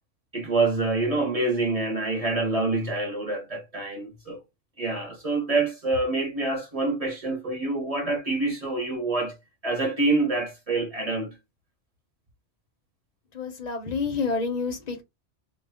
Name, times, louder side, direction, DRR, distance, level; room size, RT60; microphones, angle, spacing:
voice 1, 0.3-4.4 4.8-9.3 9.6-11.4, right 2 dB, 35° right, 0.8 m, -26 dB
voice 2, 13.3-15.0, left 4 dB, 45° left, 0.6 m, -28 dB
2.2 x 2.1 x 3.4 m
omnidirectional pair, 1.2 m